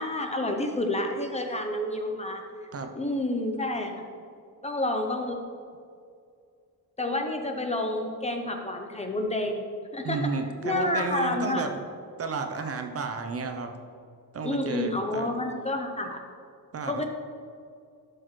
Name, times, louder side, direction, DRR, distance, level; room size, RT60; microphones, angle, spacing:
voice 1, 0.0-2.4 2.9-3.9 4.6-5.4 7.0-9.6 9.9-10.2 10.6-11.7 14.4-16.2 16.9-17.1, left 1 dB, 15° left, 3 dB, 0.6 m, -29 dB
voice 2, 10.0-11.8 12.2-13.7 14.3-15.3 16.7-17.1, right 4 dB, 35° right, 5 dB, 0.6 m, -32 dB
12.0 x 6.3 x 3.1 m, 2.3 s
wide cardioid pair, 150°, 39 cm